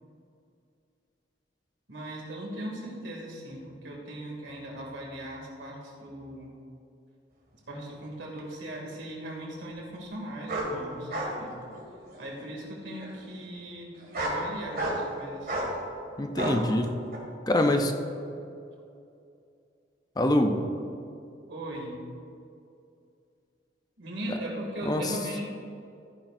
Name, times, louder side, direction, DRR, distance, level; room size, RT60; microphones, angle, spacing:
voice 1, 1.9-6.5 7.7-11.5 12.2-13.9 14.2-15.5 21.5-22.0 24.0-25.5, right 1 dB, 85° right, -2 dB, 2.6 m, -38 dB
sound 1, 8.4-8.5 10.5-10.7 11.1-11.3 11.7-12.2 13.0-13.1 13.9-14.4 14.7-15.1 15.5-15.7 16.4-16.6 17.1-17.2, right 1 dB, 55° right, 2.1 m, -31 dB
voice 2, 16.2-17.0 17.5-17.9 20.2-20.7 24.3-24.4 24.8-25.2, left 1 dB, 20° left, 5 dB, 0.6 m, -25 dB
14.5 x 10.0 x 2.6 m, 2.5 s
head